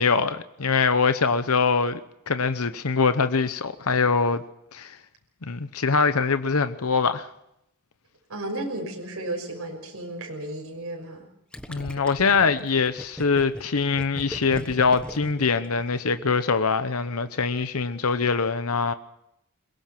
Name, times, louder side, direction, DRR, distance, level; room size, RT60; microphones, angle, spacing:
voice 1, 0.0-2.0 2.3-4.4 4.7-5.0 5.4-7.3 11.7-18.9, left 5 dB, 75° left, 0.9 m, -23 dB
voice 2, 8.3-11.2, right 1 dB, 70° right, 5.9 m, -33 dB
Gurgling, 11.5-16.2, equal, 5° left, 1.2 m, -39 dB
23.0 x 21.0 x 6.0 m
head